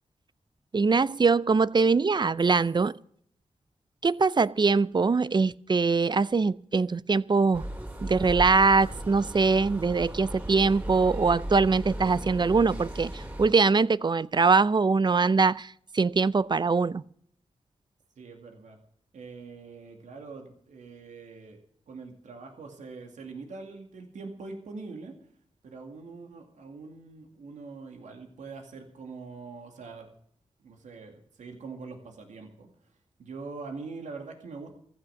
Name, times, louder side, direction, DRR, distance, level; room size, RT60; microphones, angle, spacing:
voice 1, 0.7-3.0 4.0-7.6 8.0-17.0, right 4 dB, 40° right, 0.5 m, -23 dB
sound 1, 7.5-13.5, right 1 dB, 15° right, 3.7 m, -36 dB
voice 2, 18.2-18.8 19.1-21.6 21.9-25.3 25.6-30.1 30.6-34.8, right 4 dB, 90° right, 2.3 m, -43 dB
15.0 x 11.5 x 6.3 m
cardioid pair, 50°, 12 cm